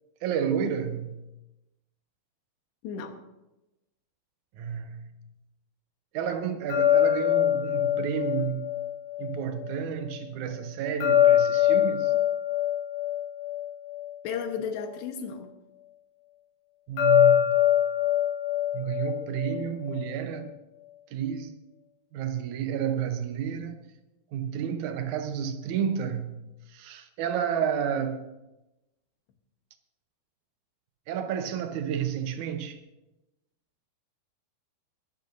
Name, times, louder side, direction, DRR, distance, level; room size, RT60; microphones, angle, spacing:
voice 1, 0.2-1.2 4.5-5.1 6.1-8.7 9.2-12.1 16.9-17.7 18.7-20.5 21.1-21.5 22.1-23.9 24.3-28.3 31.1-32.8, right 8 dB, 90° right, 1.7 m, -31 dB
voice 2, 2.8-3.2 14.2-15.5, left 6 dB, 90° left, 3.5 m, -34 dB
sound 1, 6.7-9.8 11.0-14.5 17.0-20.1, left 11 dB, 60° left, 5.8 m, -24 dB
21.0 x 13.5 x 2.7 m
omnidirectional pair, 4.7 m